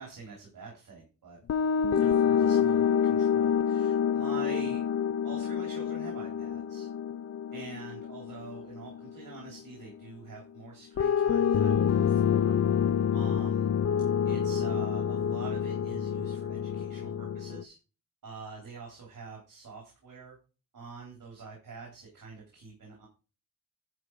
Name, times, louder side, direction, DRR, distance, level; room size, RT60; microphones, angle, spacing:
voice 1, 0.0-1.4 2.0-4.8 5.2-6.9 7.5-12.6 13.1-13.7 14.2-17.7 18.2-20.4 20.7-23.1, right 4 dB, 80° right, -2 dB, 3.7 m, -45 dB
sound 1, 1.5-9.6 11.0-17.6, left 8 dB, 50° left, 0.5 m, -27 dB
11.0 x 5.2 x 4.8 m, 0.34 s
wide cardioid pair, 150°, 33 cm